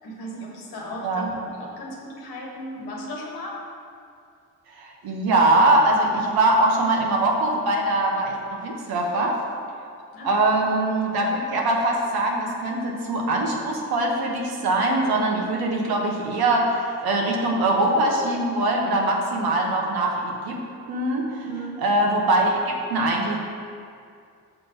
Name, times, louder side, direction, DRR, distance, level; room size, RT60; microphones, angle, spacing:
voice 1, 0.0-3.6 10.1-10.3 21.4-21.8, equal, 80° left, -2 dB, 1.3 m, -36 dB
voice 2, 4.8-9.4 10.2-21.5 21.8-23.4, right 2 dB, 75° right, 0 dB, 1.1 m, -22 dB
5.8 x 3.9 x 5.8 m, 2.3 s
supercardioid pair, 50°, 37 cm